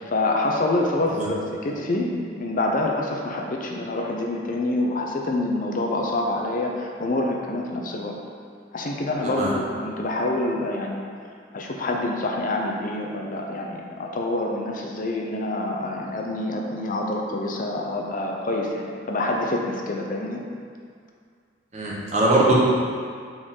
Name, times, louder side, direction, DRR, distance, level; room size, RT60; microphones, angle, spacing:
voice 1, 0.1-2.1 2.4-8.1 8.7-11.0 11.5-20.4, left 2 dB, 45° left, 0 dB, 0.6 m, -26 dB
voice 2, 21.7-22.5, right 2 dB, 40° right, -5 dB, 1.2 m, -21 dB
6.4 x 4.6 x 3.8 m, 2.1 s
head